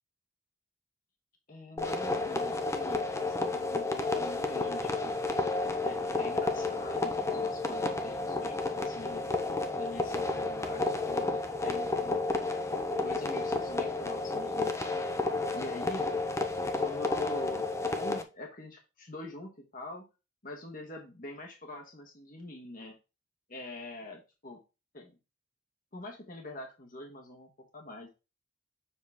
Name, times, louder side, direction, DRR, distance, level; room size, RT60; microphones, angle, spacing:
voice 1, 1.5-5.5 5.8-9.2 9.7-12.2 13.0-14.7 15.0-16.1 16.8-17.7 17.9-20.0 20.4-23.0 23.5-24.6 24.9-25.2 25.9-28.1, left 1 dB, 40° left, 1 dB, 1.3 m, -44 dB
sound 1, 1.8-18.2, left 3 dB, 15° left, 0.7 m, -31 dB
7.2 x 5.8 x 3.5 m, 0.29 s
head